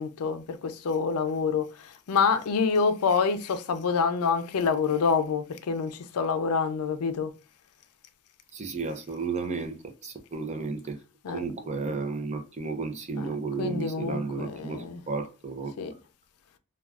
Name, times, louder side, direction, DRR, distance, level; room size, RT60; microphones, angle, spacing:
voice 1, 0.0-7.3 11.2-11.4 13.2-15.0 15.8-16.0, left 5 dB, 80° left, 0.4 m, -27 dB
voice 2, 8.5-9.8 10.0-11.0 11.3-15.7, right 4 dB, 30° right, 0.5 m, -33 dB
2.3 x 2.3 x 3.3 m
head